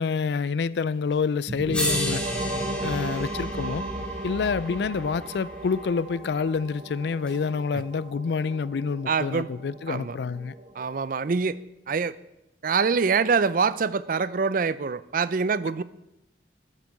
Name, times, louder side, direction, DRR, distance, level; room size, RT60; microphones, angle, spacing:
voice 1, 0.0-2.2 2.8-3.8 4.2-10.5, left 5 dB, 70° left, 0.4 m, -27 dB
sound 1, 1.1-1.2 1.7-5.9 7.3-7.4, left 1 dB, 5° left, 2.3 m, -34 dB
sound 2, 1.5-11.0, right 1 dB, 35° right, 1.1 m, -35 dB
voice 2, 9.1-9.5 9.9-10.2 10.8-11.6 11.9-12.1 12.6-15.8, right 5 dB, 50° right, 0.5 m, -25 dB
14.0 x 9.0 x 4.7 m
head